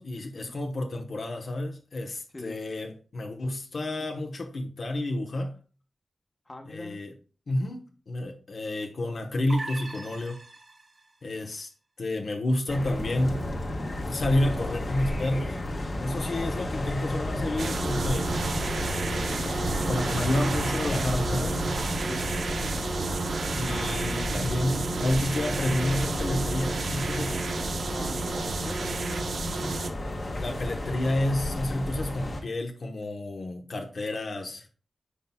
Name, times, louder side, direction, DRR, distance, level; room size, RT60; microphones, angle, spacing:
voice 1, 0.0-5.6 6.7-7.1 7.5-10.4 11.2-11.7 12.0-13.5 14.1-15.6 16.0-18.3 19.8-21.6 23.5-27.4 30.3-34.7, left 1 dB, 60° left, 1.0 m, -30 dB
voice 2, 6.5-7.0 22.0-22.4 27.9-29.3, left 1 dB, 25° left, 1.1 m, -42 dB
sound 1, 9.5-11.1, right 2 dB, 40° right, 1.5 m, -40 dB
sound 2, 12.7-32.4, left 1 dB, 40° left, 1.3 m, -33 dB
sound 3, 17.6-29.9, right 3 dB, 70° right, 0.8 m, -31 dB
9.9 x 5.5 x 2.3 m
wide cardioid pair, 120°, 0 cm